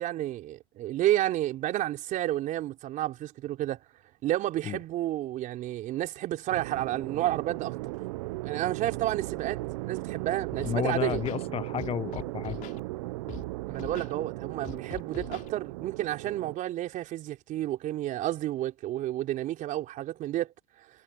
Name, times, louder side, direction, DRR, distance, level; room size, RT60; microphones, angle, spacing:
voice 1, 0.0-3.8 4.2-7.9 8.4-9.6 9.9-11.2 13.7-20.5, right 14 dB, 45° right, 4.1 m, -31 dB
sound 1, 6.5-16.6, right 21 dB, 70° right, 0.8 m, -37 dB
Scratching (performance technique), 10.6-10.8 11.0-11.4 11.8-12.8 13.3-13.4 13.7-14.1 14.6-15.5, left 14 dB, 50° left, 3.9 m, -42 dB
voice 2, 10.7-12.6, left 10 dB, 35° left, 0.9 m, -32 dB
hypercardioid pair, 95°, 18 cm